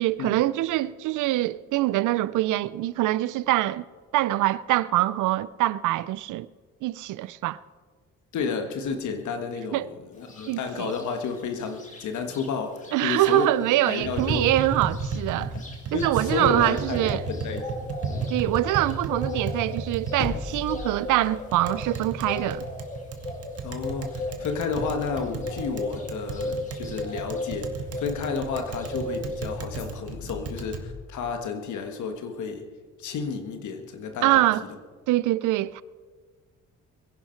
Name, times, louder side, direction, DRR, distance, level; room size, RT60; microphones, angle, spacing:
voice 1, 0.0-3.9 4.1-6.5 6.8-7.6 9.7-9.9 10.5-10.9 12.9-15.5 15.9-17.3 18.3-22.6 34.2-34.6 35.1-35.8, right 16 dB, 85° right, 0.5 m, -24 dB
voice 2, 8.3-14.5 15.4-15.6 15.9-17.6 18.1-18.3 23.6-32.7 33.0-34.5, left 5 dB, 75° left, 1.5 m, -31 dB
sound 1, 10.3-10.5 10.9-12.5 12.8-12.9 13.2-28.2 28.5-29.6, left 2 dB, 25° left, 2.7 m, -36 dB
Tap, 14.0-30.8, right 4 dB, 50° right, 1.7 m, -34 dB
sound 2, 20.0-22.3 22.6-22.9 24.2-26.4 29.7-31.6 31.9-32.0, left 4 dB, 45° left, 2.7 m, -40 dB
22.0 x 10.5 x 4.5 m
cardioid pair, 90°, 30 cm